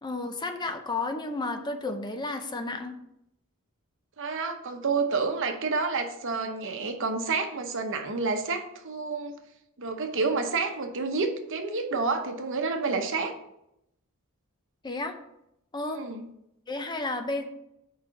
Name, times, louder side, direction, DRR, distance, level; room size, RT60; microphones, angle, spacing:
voice 1, 0.0-3.0 14.8-15.1 15.7-16.0 16.7-17.4, left 2 dB, 20° left, 7 dB, 0.5 m, -32 dB
voice 2, 4.2-9.4 9.8-13.3 15.9-16.3, right 4 dB, 60° right, 6 dB, 0.9 m, -29 dB
5.0 x 4.8 x 5.7 m, 0.80 s
head